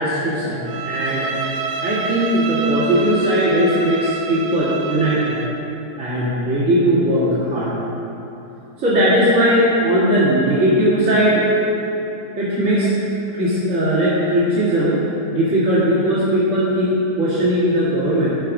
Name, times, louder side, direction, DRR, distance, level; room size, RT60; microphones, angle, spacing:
voice 1, 0.0-1.3 1.8-5.4 6.0-7.7 8.8-11.5 12.4-12.9 13.3-18.3, equal, 45° right, -12 dB, 2.4 m, -18 dB
Bowed string instrument, 0.7-5.6, right 5 dB, 85° right, 1.4 m, -28 dB
12.5 x 5.0 x 6.1 m, 2.9 s
omnidirectional pair, 1.8 m